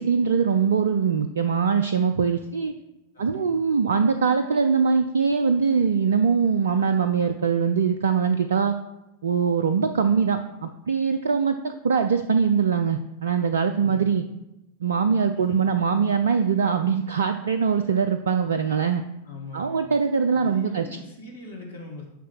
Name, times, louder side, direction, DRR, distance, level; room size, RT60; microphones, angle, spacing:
voice 1, 0.0-2.7 3.2-8.7 9.2-14.2 14.8-19.0 19.5-20.9, right 6 dB, 65° right, 9 dB, 0.4 m, -22 dB
voice 2, 3.1-3.6 13.8-14.2 15.4-15.6 19.2-19.8 20.3-22.0, left 2 dB, 75° left, -2 dB, 1.9 m, -41 dB
10.0 x 3.6 x 6.1 m, 0.94 s
figure-of-eight pair, 90°, 0 cm